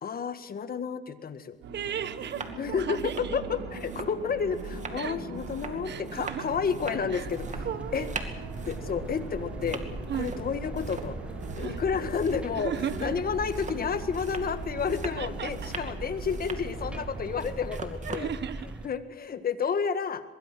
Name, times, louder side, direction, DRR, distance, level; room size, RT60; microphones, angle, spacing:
voice 1, 0.0-1.6 2.6-7.7 7.9-8.1 8.7-9.8 10.1-11.2 11.6-12.7 13.0-18.3 18.8-20.2, left 6 dB, 50° left, 11 dB, 1.7 m, -31 dB
sound 1, 1.5-1.6 2.1-2.6 2.9-18.3, right 4 dB, 35° right, 2.6 m, -43 dB
sound 2, 1.6-17.6, right 4 dB, 90° right, 4.6 m, -40 dB
voice 2, 1.7-3.4 5.0-5.2 5.8-6.5 7.1-7.3 7.6-8.2 10.1-10.4 11.6-11.8 12.5-13.1 15.2-15.7 18.0-18.8, right 9 dB, 60° right, 13 dB, 1.4 m, -35 dB
sound 3, 7.2-18.9, right 1 dB, 5° right, 1.7 m, -40 dB
23.5 x 22.0 x 6.2 m, 1.1 s
cardioid pair, 90°, 20 cm